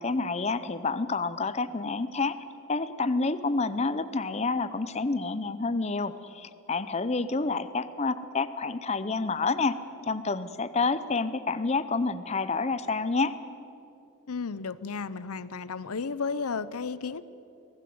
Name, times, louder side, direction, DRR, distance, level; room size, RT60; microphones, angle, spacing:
voice 1, 0.0-2.3 2.7-9.8 10.1-13.3, left 3 dB, 30° left, 12 dB, 0.6 m, -28 dB
voice 2, 14.3-17.2, left 5 dB, 85° left, 16 dB, 0.7 m, -33 dB
24.5 x 17.5 x 7.8 m, 2.8 s
head